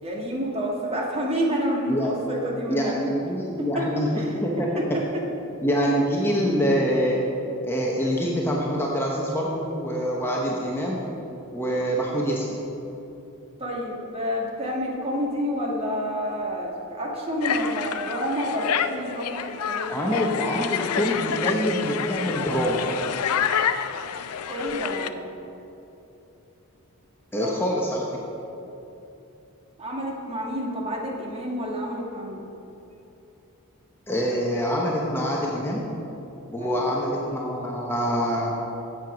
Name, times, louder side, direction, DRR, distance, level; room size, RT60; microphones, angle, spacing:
voice 1, 0.0-3.0 3.7-3.8 4.1-4.4 4.7-4.8 13.6-19.9 24.5-25.2 27.4-27.9 28.2-28.6 29.8-32.4 36.6-36.9, equal, 25° right, -2 dB, 1.5 m, -29 dB
voice 2, 2.7-4.8 5.6-7.2 7.6-11.0 11.5-12.5 19.9-22.8 27.3-28.1 34.1-35.8 36.5-38.5, equal, 10° left, -3 dB, 0.9 m, -25 dB
sound 1, 17.4-25.1, left 8 dB, 75° left, 0.4 m, -28 dB
7.8 x 7.8 x 6.0 m, 2.9 s
head